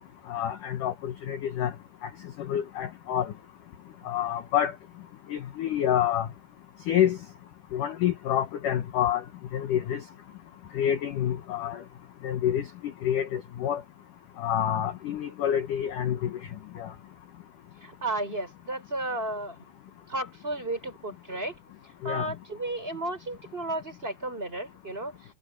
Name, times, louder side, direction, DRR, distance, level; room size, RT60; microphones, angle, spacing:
voice 1, 0.3-1.7 2.0-2.1 2.4-3.3 4.1-4.7 5.3-6.3 6.9-7.2 7.7-9.2 9.5-10.0 10.7-11.8 12.2-12.7 13.0-13.8 14.4-16.3 16.8-16.9 22.0-22.3, left 10 dB, 85° left, 1.8 m, -27 dB
voice 2, 17.8-19.6 20.1-21.5 22.0-25.1, right 1 dB, 10° right, 6.0 m, -33 dB
omnidirectional pair, 5.6 m